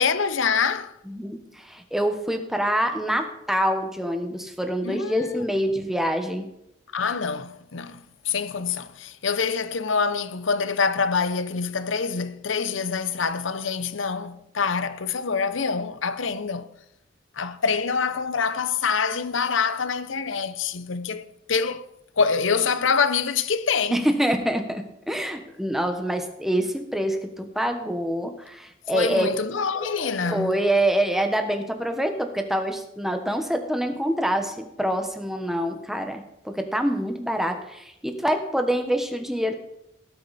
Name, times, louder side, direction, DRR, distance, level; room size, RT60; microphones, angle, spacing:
voice 1, 0.0-0.9 4.8-5.4 6.9-16.7 17.4-21.2 21.5-21.8 22.2-24.0 28.9-30.6, left 5 dB, 85° left, 0.8 m, -25 dB
voice 2, 1.1-6.5 23.9-29.3 29.7-39.6, equal, ahead, 1.2 m, -26 dB
17.5 x 8.6 x 4.2 m
head